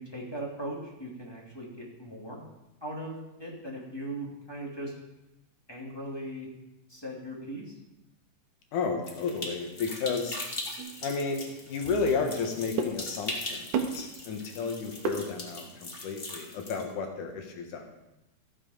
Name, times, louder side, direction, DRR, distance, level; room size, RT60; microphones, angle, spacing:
voice 1, 0.0-2.4 2.8-5.0 5.7-6.5 6.9-7.7, right 1 dB, 10° left, -4 dB, 2.2 m, -39 dB
voice 2, 8.7-10.4 11.0-17.8, left 4 dB, 75° left, 3 dB, 2.9 m, -32 dB
sound 1, 9.0-16.9, left 2 dB, 50° left, 0.6 m, -40 dB
sound 2, 10.8-15.9, right 5 dB, 70° right, 2.5 m, -37 dB
14.5 x 7.5 x 5.0 m, 0.93 s
omnidirectional pair, 3.7 m